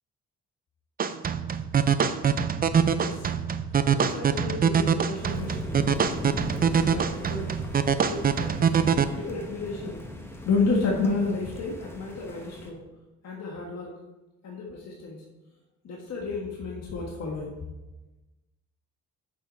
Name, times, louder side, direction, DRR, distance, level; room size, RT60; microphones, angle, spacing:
sound 1, 1.0-9.0, right 7 dB, 30° right, 0.5 m, -24 dB
voice 1, 3.8-5.6 6.8-7.5 8.0-8.8 9.0-10.0 10.4-12.9 13.2-13.9 14.4-15.2 15.8-17.5, left 3 dB, 55° left, -1 dB, 1.4 m, -31 dB
sound 2, 5.2-12.7, left 1 dB, 10° left, 1.1 m, -39 dB
7.2 x 5.8 x 4.3 m, 1.1 s
cardioid pair, 95°, 30 cm